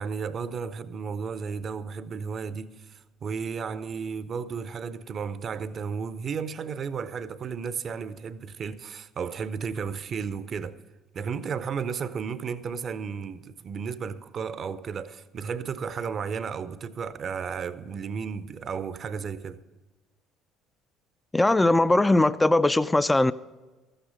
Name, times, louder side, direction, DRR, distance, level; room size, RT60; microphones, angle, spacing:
voice 1, 0.0-10.8 11.1-19.6, right 6 dB, 45° right, 0.6 m, -33 dB
voice 2, 21.3-23.3, left 2 dB, 15° left, 0.3 m, -20 dB
13.5 x 8.9 x 5.1 m
hypercardioid pair, 60°, 0 cm